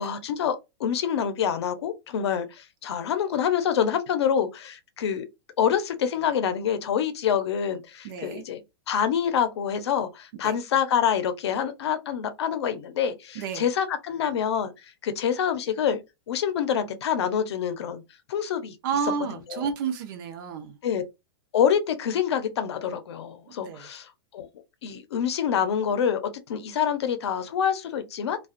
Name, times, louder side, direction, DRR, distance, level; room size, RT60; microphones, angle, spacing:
voice 1, 0.0-5.3 5.6-8.6 8.9-14.7 15.0-16.0 16.3-18.0 18.3-18.8 19.5-19.6 20.8-21.0 21.5-24.5 24.8-26.2 26.5-28.4, left 8 dB, 75° left, 0.6 m, -26 dB
voice 2, 8.0-8.4 10.4-10.6 13.3-13.7 18.8-20.8 23.6-23.9, right 6 dB, 50° right, 0.6 m, -31 dB
2.4 x 2.3 x 2.4 m
hypercardioid pair, 130°, 14 cm